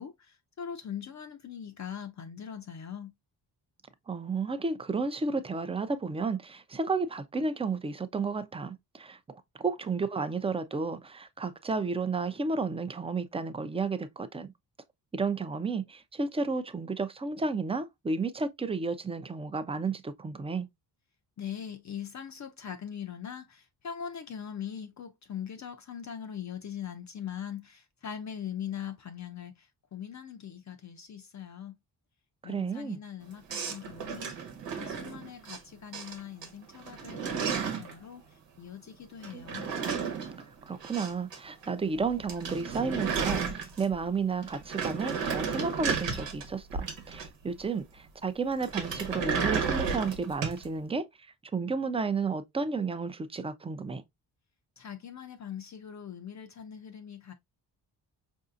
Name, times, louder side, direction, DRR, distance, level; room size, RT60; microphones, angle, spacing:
voice 1, 0.0-3.1 21.4-31.8 32.4-39.7 54.8-57.3, left 8 dB, 40° left, 0.5 m, -41 dB
voice 2, 4.1-14.5 15.1-20.7 32.4-33.0 40.6-51.1 51.5-54.0, right 4 dB, 15° right, 0.5 m, -32 dB
sound 1, 33.5-35.6 35.9-36.5 36.7-37.9 39.2-41.4 41.6-41.7 42.0-42.1 42.3-44.0 44.4-47.5 48.6-50.6, right 6 dB, 85° right, 1.1 m, -33 dB
4.7 x 2.7 x 2.4 m
cardioid pair, 80°, 42 cm